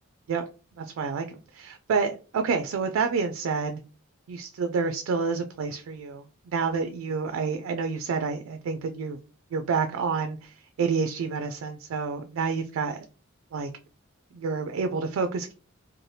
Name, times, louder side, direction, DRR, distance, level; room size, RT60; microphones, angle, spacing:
voice 1, 0.8-3.8 4.3-9.2 9.5-13.0 13.5-13.7 14.3-15.5, right 5 dB, 75° right, 7 dB, 0.3 m, -29 dB
3.2 x 2.1 x 2.7 m, 0.35 s
head